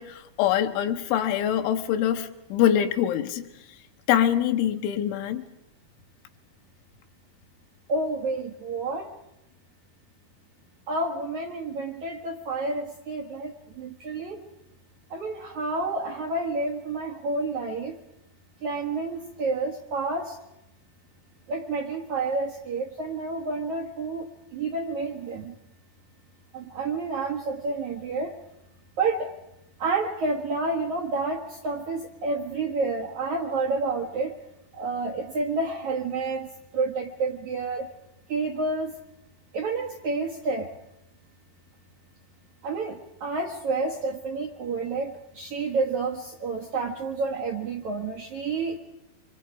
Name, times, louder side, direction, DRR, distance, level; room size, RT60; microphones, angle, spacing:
voice 1, 0.0-3.5 4.1-5.5, left 10 dB, 90° left, 3.6 m, -24 dB
voice 2, 7.9-9.1 10.9-14.4 15.1-18.0 18.6-20.4 21.5-25.6 26.5-28.3 29.0-29.3 29.8-34.4 34.7-37.9 38.3-38.9 39.5-40.7 42.6-48.8, right 3 dB, 65° right, 1.9 m, -29 dB
26.0 x 25.5 x 4.9 m
omnidirectional pair, 5.4 m